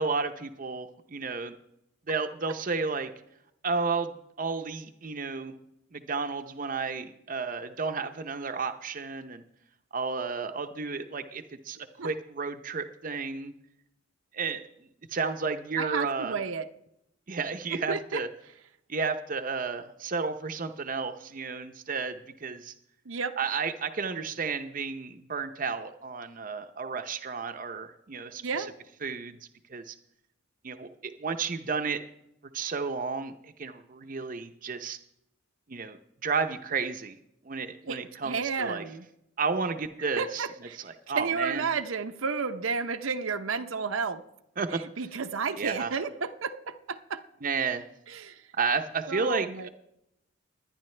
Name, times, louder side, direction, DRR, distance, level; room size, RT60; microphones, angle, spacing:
voice 1, 0.0-1.6 2.1-3.1 3.6-5.5 5.9-9.4 9.9-13.5 14.3-14.7 15.1-16.4 17.3-18.3 18.9-22.7 23.4-28.7 29.0-29.4 29.7-29.9 30.6-32.0 32.5-35.0 35.7-37.2 37.4-38.8 39.4-41.7 44.6-45.0 45.6-45.9 47.4-47.9 48.6-49.7, right 4 dB, 40° right, 7 dB, 0.6 m, -32 dB
voice 2, 15.8-16.6 17.9-18.2 23.1-23.4 28.4-28.7 37.9-39.0 40.2-40.8 41.2-44.2 45.0-47.2 48.1-48.4 49.1-49.7, right 5 dB, 80° right, 7 dB, 0.7 m, -32 dB
21.0 x 10.0 x 3.3 m, 0.81 s
head